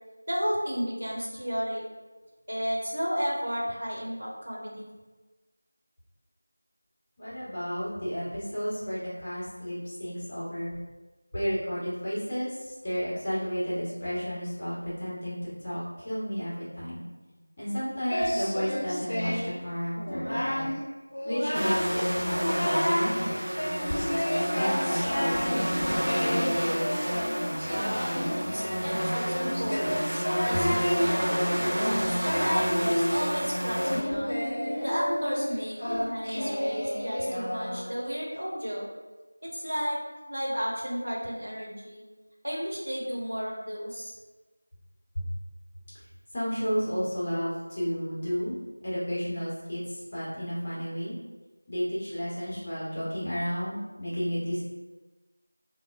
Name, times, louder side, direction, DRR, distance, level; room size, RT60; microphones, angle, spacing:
voice 1, 0.3-1.8 2.5-4.9 27.7-30.0 30.4-34.3 34.8-38.8 39.4-40.0 40.3-42.0 42.4-44.1, equal, 85° right, -4 dB, 1.0 m, -33 dB
voice 2, 7.2-10.7 11.3-17.0 17.6-20.7 21.2-23.4 24.4-26.8 30.5-30.6 45.1-45.3 46.3-48.6 48.8-51.1 51.7-54.6, equal, 20° left, -9 dB, 0.6 m, -32 dB
Singing, 18.1-19.6 20.0-20.7 21.1-21.9 22.2-23.1 23.6-38.1, equal, 60° left, 0.4 m, -30 dB
sound 1, 21.5-34.0, equal, 55° right, 0.6 m, -30 dB
3.3 x 2.0 x 2.2 m, 1.2 s
figure-of-eight pair, 175°, 0 cm